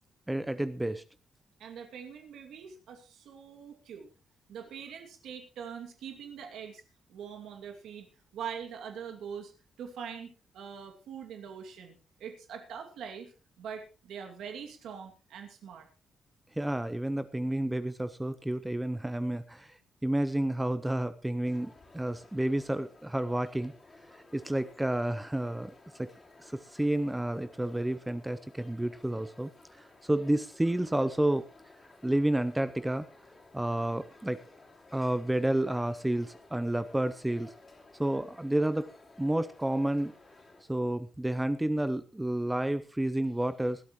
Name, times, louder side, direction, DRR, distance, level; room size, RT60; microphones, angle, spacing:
voice 1, 0.3-1.0 16.6-19.7 20.0-23.7 24.1-26.1 26.4-31.4 32.0-33.1 33.5-34.4 34.9-37.5 38.0-38.9 39.2-40.1 40.7-43.8, right 1 dB, 5° right, 12 dB, 0.6 m, -30 dB
voice 2, 1.6-4.1 4.5-6.8 7.1-8.1 8.3-9.5 9.8-11.9 12.2-15.9, right 7 dB, 85° right, 4 dB, 2.4 m, -43 dB
sound 1, 21.4-40.6, left 3 dB, 20° left, 3.5 m, -56 dB
20.0 x 12.0 x 3.1 m, 0.31 s
cardioid pair, 150°, 0 cm